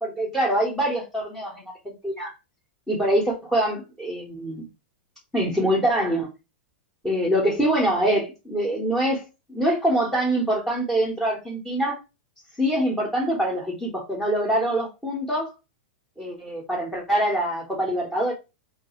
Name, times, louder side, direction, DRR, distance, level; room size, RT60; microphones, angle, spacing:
voice 1, 0.0-2.3 2.9-4.7 5.3-6.3 7.0-11.9 12.6-15.5 16.2-18.3, right 1 dB, 5° left, 0.7 m, -24 dB
2.4 x 2.3 x 2.8 m
hypercardioid pair, 125°, 6 cm